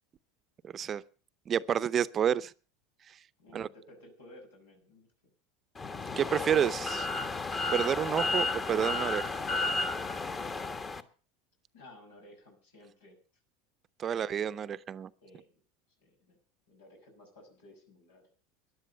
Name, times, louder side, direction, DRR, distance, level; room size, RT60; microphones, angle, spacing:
voice 1, 0.6-1.0 1.5-2.5 3.5-3.7 6.2-7.1 7.7-9.3 14.0-15.1, right 9 dB, 35° right, 0.7 m, -29 dB
voice 2, 3.4-5.1 11.7-13.2 14.1-14.7 15.2-15.6 16.0-16.4 16.7-18.2, left 1 dB, 90° left, 6.3 m, -56 dB
sound 1, 5.8-11.0, left 3 dB, 25° left, 1.4 m, -33 dB
13.5 x 10.5 x 6.7 m
hypercardioid pair, 100°, 0 cm